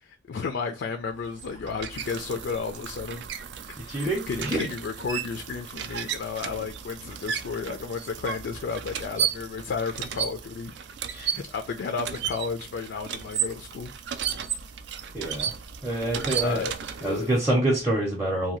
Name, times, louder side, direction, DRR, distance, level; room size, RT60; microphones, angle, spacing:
voice 1, 0.0-3.3 3.7-10.7 11.1-13.9 16.0-17.3, left 5 dB, 65° left, 0.3 m, -33 dB
sound 1, 1.1-17.4, right 8 dB, 65° right, 0.3 m, -34 dB
voice 2, 3.9-4.6 11.1-11.3 15.1-15.5 15.8-16.6 17.0-18.6, right 1 dB, 10° right, 0.6 m, -26 dB
2.7 x 2.2 x 3.0 m
head